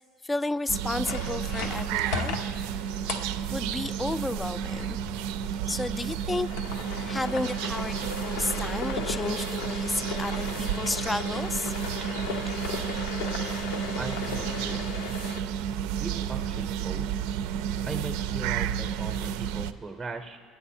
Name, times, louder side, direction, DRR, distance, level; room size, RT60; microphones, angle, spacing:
voice 1, 0.2-2.3 3.5-5.0 5.7-11.8, left 2 dB, 15° left, 14 dB, 0.3 m, -32 dB
sound 1, 0.7-19.7, right 9 dB, 85° right, 0.4 m, -32 dB
sound 2, 1.0-15.4, left 4 dB, 90° left, 0.9 m, -37 dB
voice 2, 14.0-14.8 16.0-17.1 17.8-20.4, right 3 dB, 15° right, 5 dB, 0.7 m, -39 dB
21.5 x 9.4 x 4.3 m, 2.1 s
cardioid pair, 130°, 0 cm